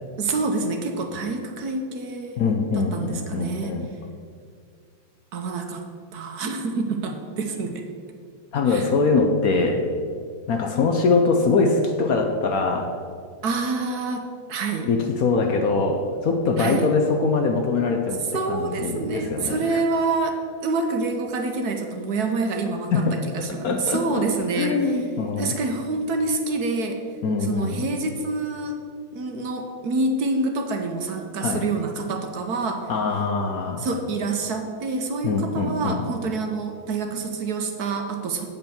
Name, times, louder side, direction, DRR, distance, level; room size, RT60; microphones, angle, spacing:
voice 1, 0.2-2.4 2.7-3.8 5.3-5.8 6.1-7.8 8.7-8.9 13.4-14.9 16.6-16.9 18.3-24.8 25.4-27.0 27.5-28.8 29.1-32.9 33.8-38.5, right 3 dB, 65° right, 4 dB, 1.2 m, -27 dB
voice 2, 2.4-3.9 8.5-9.9 10.5-13.0 14.9-19.8 22.9-24.2 24.6-25.6 27.2-27.9 31.4-31.7 32.9-33.9 35.2-36.0, left 4 dB, 65° left, 4 dB, 1.0 m, -23 dB
8.2 x 5.3 x 7.0 m, 2.1 s
omnidirectional pair, 2.0 m